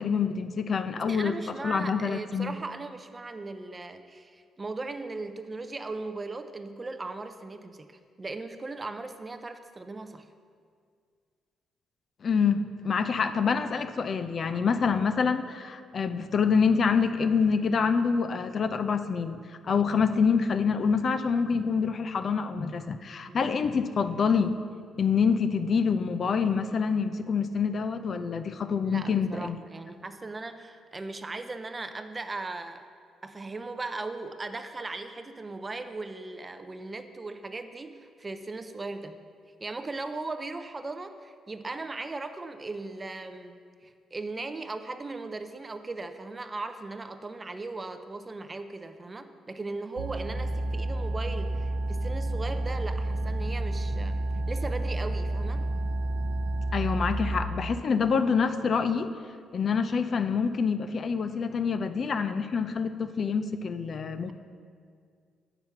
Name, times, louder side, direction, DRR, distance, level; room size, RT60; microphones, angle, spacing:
voice 1, 0.0-1.3 1.6-2.6 12.2-19.4 19.6-24.5 25.0-29.6 56.7-59.1 59.5-64.3, left 5 dB, 50° left, 10 dB, 0.4 m, -26 dB
voice 2, 1.1-10.3 13.0-13.3 14.6-14.8 19.6-19.8 23.3-23.5 28.8-32.9 33.2-39.2 39.6-54.2 54.5-55.6, right 3 dB, 25° right, 9 dB, 0.5 m, -38 dB
sound 1, 50.0-57.4, right 2 dB, 85° right, 0.4 m, -30 dB
7.8 x 5.9 x 5.8 m, 2.1 s
cardioid pair, 90°, 0 cm